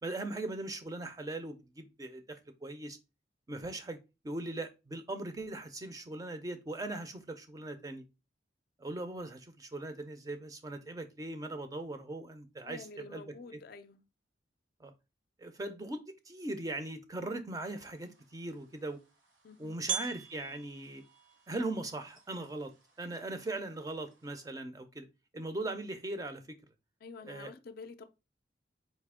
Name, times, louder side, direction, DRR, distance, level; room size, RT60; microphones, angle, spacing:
voice 1, 0.0-3.0 3.5-4.0 4.2-8.0 8.8-13.2 14.8-14.9 15.4-19.0 19.6-21.0 21.5-22.7 23.0-25.1 25.3-26.6 27.3-27.5, right 2 dB, 20° right, 0.4 m, -39 dB
voice 2, 12.6-14.0 19.4-19.8 27.0-28.1, left 4 dB, 55° left, 0.4 m, -48 dB
sound 1, 17.8-24.5, right 6 dB, 85° right, 1.1 m, -45 dB
4.2 x 2.7 x 3.5 m
head